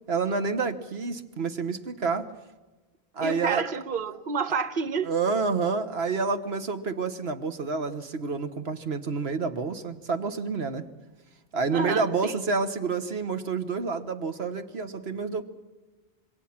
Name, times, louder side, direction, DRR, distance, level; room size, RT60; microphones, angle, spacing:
voice 1, 0.1-2.3 3.1-3.6 5.0-10.8 11.5-15.4, right 4 dB, 85° right, 1.6 m, -28 dB
voice 2, 3.2-5.1 11.7-12.4, right 5 dB, 60° right, 1.1 m, -29 dB
27.0 x 22.0 x 5.9 m
omnidirectional pair, 1.0 m